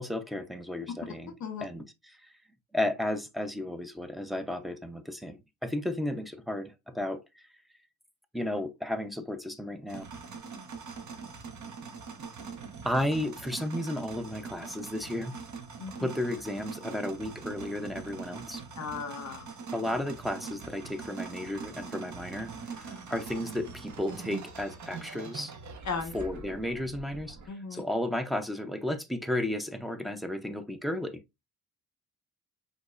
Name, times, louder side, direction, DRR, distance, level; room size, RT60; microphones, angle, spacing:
voice 1, 0.0-1.3 1.6-1.8 2.2-2.3 2.7-7.2 8.3-10.0 12.8-15.4 16.0-18.6 19.7-25.5 26.1-27.4 27.7-31.2, left 1 dB, ahead, 0.7 m, -33 dB
sound 1, 9.9-27.5, right 5 dB, 50° right, 1.1 m, -43 dB
voice 2, 15.8-16.1 18.8-19.5 25.8-26.1 27.5-27.8, left 5 dB, 50° left, 1.2 m, -36 dB
5.1 x 4.0 x 2.4 m
cardioid pair, 115°, 37 cm